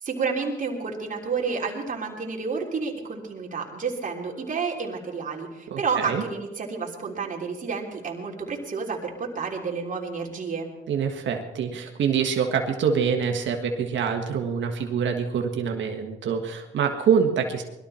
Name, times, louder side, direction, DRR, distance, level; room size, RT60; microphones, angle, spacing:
voice 1, 0.0-10.7, right 5 dB, 40° right, -1 dB, 3.2 m, -30 dB
voice 2, 5.7-6.2 10.9-17.6, right 7 dB, 70° right, 3 dB, 1.5 m, -25 dB
21.0 x 13.0 x 4.3 m, 1.0 s
cardioid pair, 90°, 20 cm